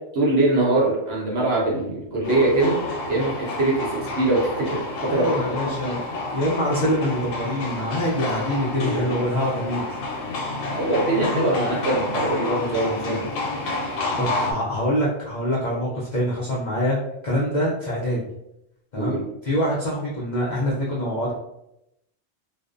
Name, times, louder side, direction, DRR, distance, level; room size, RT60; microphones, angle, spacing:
voice 1, 0.1-2.8 3.1-5.4 5.8-6.0 8.8-9.2 10.7-13.3 19.0-19.2, right 2 dB, 60° right, -3 dB, 0.9 m, -23 dB
sound 1, 2.2-14.5, left 2 dB, 90° left, 1.0 m, -29 dB
voice 2, 5.1-9.9 14.2-18.2 18.9-21.3, equal, 60° left, -5 dB, 0.4 m, -25 dB
2.5 x 2.1 x 2.4 m, 0.83 s
omnidirectional pair, 1.3 m